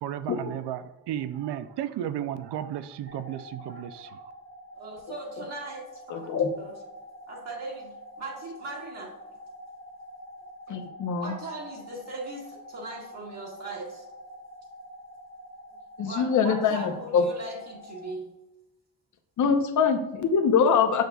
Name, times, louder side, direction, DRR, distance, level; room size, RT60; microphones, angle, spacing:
voice 1, 0.0-4.2, right 11 dB, 90° right, 13 dB, 0.5 m, -34 dB
sound 1, 3.1-18.1, equal, 30° left, 1.1 m, -46 dB
voice 2, 4.7-6.3 6.6-6.7 7.3-9.1 11.2-14.0 16.0-18.3, right 2 dB, 40° right, -4 dB, 1.2 m, -39 dB
voice 3, 6.1-6.5 10.7-11.3 16.0-17.2 19.4-21.0, left 6 dB, 50° left, 6 dB, 0.7 m, -24 dB
6.7 x 6.4 x 2.3 m, 1.0 s
cardioid pair, 155°, 40 cm